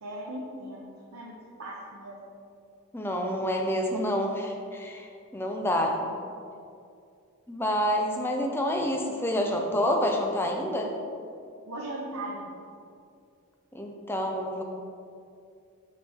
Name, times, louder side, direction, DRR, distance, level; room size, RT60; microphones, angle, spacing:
voice 1, 0.0-0.8 1.1-2.2 11.7-12.5, right 1 dB, 80° right, -3 dB, 0.8 m, -38 dB
voice 2, 2.9-6.0 7.5-10.9 13.7-14.6, equal, 10° left, 1 dB, 0.5 m, -28 dB
6.0 x 5.7 x 3.5 m, 2.4 s
head